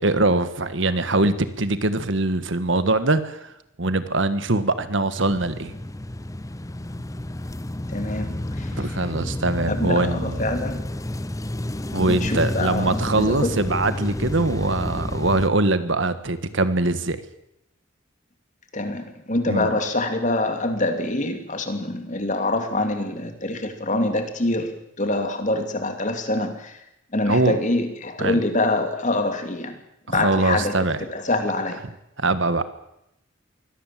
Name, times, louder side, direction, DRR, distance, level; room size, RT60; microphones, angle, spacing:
voice 1, 0.0-3.5 3.8-5.7 8.7-10.4 11.9-17.2 19.5-19.7 27.3-27.6 28.2-28.4 30.1-31.0 32.2-32.6, right 2 dB, 65° right, 12 dB, 1.6 m, -22 dB
sound 1, 5.2-15.5, left 1 dB, 15° left, 0.7 m, -30 dB
voice 2, 7.9-8.7 9.7-10.8 12.1-13.5 18.7-26.5 27.1-29.7 30.1-30.7 31.1-31.8, left 2 dB, 40° left, 7 dB, 2.9 m, -25 dB
23.5 x 17.5 x 7.7 m, 0.82 s
head